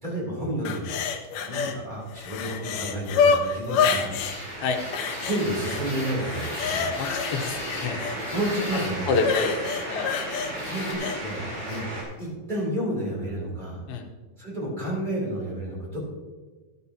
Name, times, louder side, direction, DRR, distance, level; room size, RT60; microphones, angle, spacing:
voice 1, 0.0-1.0 1.5-4.1 5.2-6.9 8.3-9.1 10.6-11.9 12.2-13.8 14.4-16.0, right 1 dB, 10° right, -4 dB, 3.2 m, -30 dB
sound 1, 0.7-1.8 2.1-4.4 4.9-5.8 6.2-8.2 9.2-11.2 11.7-11.8, left 6 dB, 70° left, 2.3 m, -27 dB
sound 2, 1.9-12.0, right 1 dB, 75° right, 5.8 m, -35 dB
sound 3, 4.2-10.9, left 2 dB, 55° left, 4.3 m, -40 dB
voice 2, 7.0-8.0 9.1-9.5 9.9-10.1 11.4-11.6 13.9-14.1, left 4 dB, 90° left, 4 dB, 2.9 m, -28 dB
13.0 x 11.0 x 2.9 m, 1.3 s
omnidirectional pair, 4.2 m